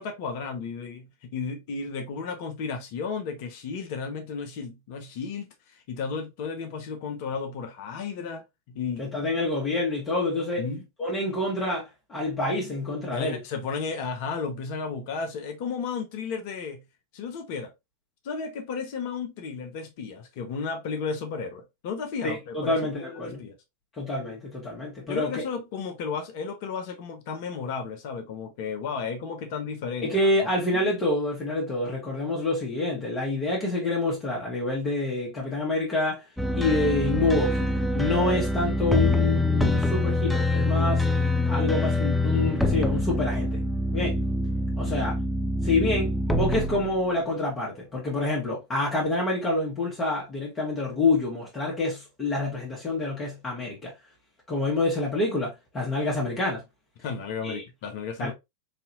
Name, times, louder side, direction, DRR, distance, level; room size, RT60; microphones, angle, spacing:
voice 1, 0.0-9.1 10.6-10.8 13.1-16.8 17.1-17.7 18.2-23.6 25.1-30.1 44.8-45.1 57.0-58.3, left 5 dB, 45° left, 0.7 m, -33 dB
voice 2, 9.0-10.7 11.0-13.4 22.2-23.4 24.0-25.3 30.0-36.3 36.5-37.6 37.9-41.1 41.5-43.6 43.9-44.2 44.8-45.1 45.6-53.9 54.5-56.6 57.4-57.6 58.2-58.3, left 2 dB, 20° left, 1.4 m, -27 dB
sound 1, 36.4-47.1, left 1 dB, 5° left, 0.5 m, -25 dB
4.2 x 2.7 x 2.6 m
figure-of-eight pair, 90°, 0 cm